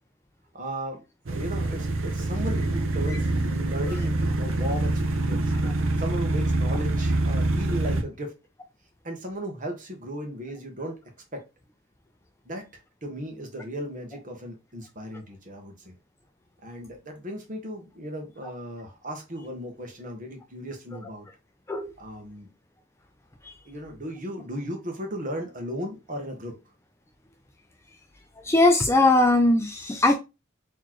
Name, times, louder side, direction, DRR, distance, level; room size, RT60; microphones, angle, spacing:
voice 1, 0.5-5.5 6.0-8.3 9.0-11.0 11.3-11.4 12.4-12.6 13.0-15.9 16.6-21.3 22.0-22.5 23.6-26.6, equal, 40° right, 1.1 m, -36 dB
sound 1, 1.3-8.0, right 2 dB, 75° right, 0.7 m, -25 dB
voice 2, 28.4-30.1, left 2 dB, 15° left, 0.3 m, -20 dB
4.0 x 3.0 x 3.0 m
head